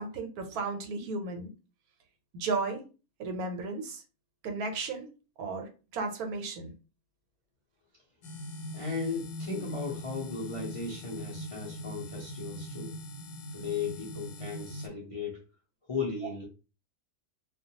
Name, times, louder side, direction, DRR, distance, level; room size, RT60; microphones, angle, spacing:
voice 1, 0.0-1.5 2.3-2.8 3.2-4.0 4.4-5.1 5.4-6.7, right 3 dB, 80° right, 5 dB, 1.1 m, -34 dB
sound 1, 8.2-14.9, left 1 dB, 80° left, 1.0 m, -41 dB
voice 2, 8.7-13.0 13.5-15.4 15.9-16.5, left 4 dB, 50° left, -3 dB, 0.4 m, -36 dB
2.4 x 2.2 x 2.7 m, 0.32 s
omnidirectional pair, 1.5 m